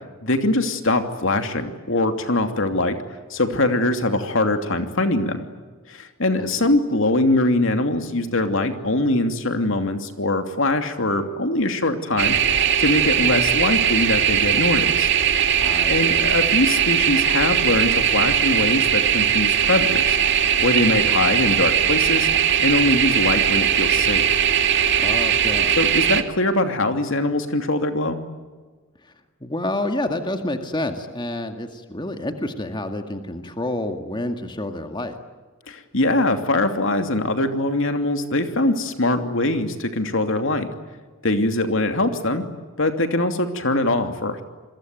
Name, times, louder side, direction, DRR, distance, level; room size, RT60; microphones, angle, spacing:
voice 1, 0.2-5.5 5.9-12.4 12.8-15.1 15.9-20.2 20.6-22.3 22.6-24.3 25.8-28.2 35.7-40.7 41.2-42.4 42.8-44.4, left 2 dB, 65° left, 7 dB, 2.9 m, -22 dB
voice 2, 6.4-6.8 15.6-16.4 25.0-25.8 29.0-29.1 29.4-35.2, left 1 dB, 20° left, 6 dB, 2.0 m, -29 dB
sound 1, 12.2-26.2, right 9 dB, 60° right, 2.2 m, -19 dB
28.5 x 22.5 x 9.2 m, 1.4 s
head